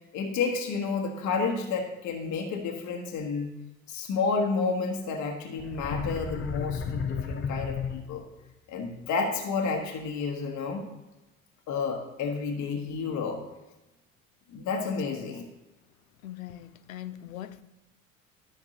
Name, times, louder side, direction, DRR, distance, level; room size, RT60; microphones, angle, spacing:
voice 1, 0.1-3.5 3.9-8.2 8.7-10.9 11.7-13.4 14.5-15.5, left 4 dB, 45° left, 1.2 m, -30 dB
sound 1, 5.6-8.4, left 5 dB, 30° left, 0.8 m, -33 dB
voice 2, 16.2-17.6, left 12 dB, 75° left, 0.6 m, -41 dB
13.0 x 5.8 x 2.9 m
figure-of-eight pair, 60°, 41 cm